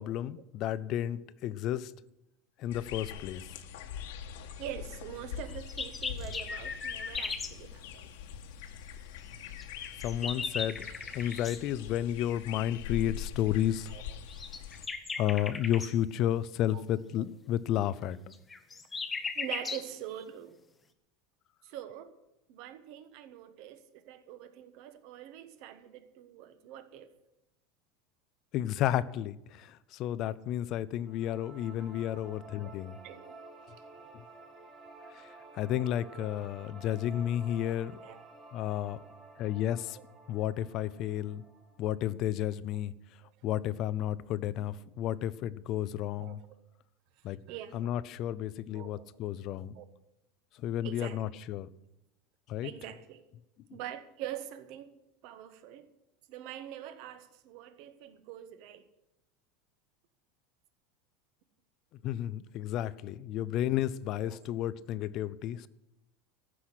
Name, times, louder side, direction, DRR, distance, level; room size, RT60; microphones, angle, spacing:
voice 1, 0.0-1.9 2.6-3.4 10.0-10.9 11.1-13.9 15.2-18.3 28.5-33.0 34.1-34.2 35.6-38.0 38.5-39.0 39.4-40.0 40.3-41.4 41.8-42.9 43.4-46.4 47.2-47.4 47.7-49.7 50.6-51.7 52.5-52.7 62.0-65.7, left 11 dB, 40° left, 17 dB, 0.5 m, -32 dB
sound 1, 2.7-14.9, left 9 dB, 75° left, 1.4 m, -43 dB
voice 2, 4.6-8.1 13.9-14.0 16.7-16.8 19.3-20.6 21.6-22.1 22.5-27.1 32.6-32.7 33.0-33.3 33.6-33.8 38.0-38.2 39.9-40.0 46.2-46.4 47.5-47.9 48.3-48.4 48.7-49.1 49.4-49.9 50.8-51.2 52.6-53.2 53.7-54.9 55.2-55.9 56.3-58.8 64.1-64.4, right 11 dB, 50° right, 11 dB, 1.3 m, -44 dB
sound 2, 5.5-7.6 9.6-11.6 14.3-15.9 18.3-19.9, left 4 dB, 15° left, 0.8 m, -37 dB
sound 3, 31.1-42.1, right 3 dB, 20° right, 2.2 m, -52 dB
14.5 x 6.2 x 9.9 m, 0.88 s
supercardioid pair, 160°, 0 cm